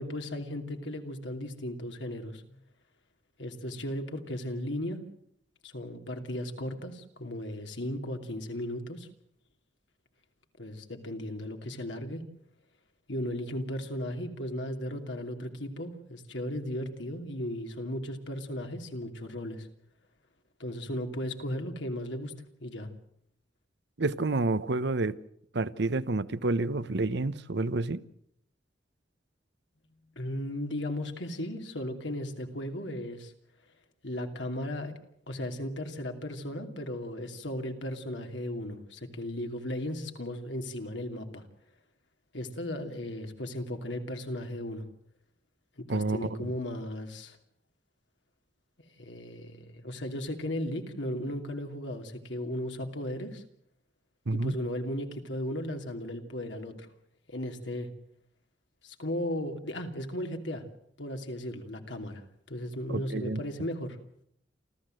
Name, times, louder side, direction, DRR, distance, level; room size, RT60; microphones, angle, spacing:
voice 1, 0.0-2.6 3.4-5.0 5.6-9.1 10.6-12.2 13.1-19.7 20.6-22.3 22.6-22.9 30.1-33.3 34.0-34.9 35.3-41.4 42.3-44.9 45.8-47.4 49.0-53.4 54.3-56.9 57.3-57.9 58.8-60.6 61.0-64.0, left 1 dB, 75° left, 2.8 m, -36 dB
voice 2, 24.0-25.2 25.5-28.0 45.9-46.5 54.3-54.6 62.9-63.4, right 2 dB, 65° right, 0.9 m, -29 dB
28.5 x 14.0 x 7.8 m
head